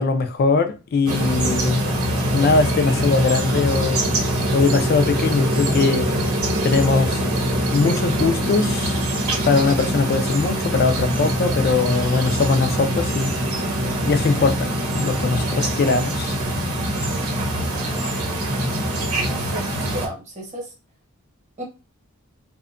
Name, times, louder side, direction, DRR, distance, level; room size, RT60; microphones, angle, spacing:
voice 1, 0.0-1.8 2.3-4.0 4.5-6.1 6.6-7.2 7.7-9.0 9.4-13.4 14.0-16.3, left 4 dB, 45° left, 0.3 m, -21 dB
sound 1, 1.0-20.1, right 1 dB, 75° right, 0.7 m, -23 dB
voice 2, 19.0-20.7 21.6-21.7, right 1 dB, 30° right, 0.9 m, -33 dB
2.7 x 2.2 x 2.4 m
head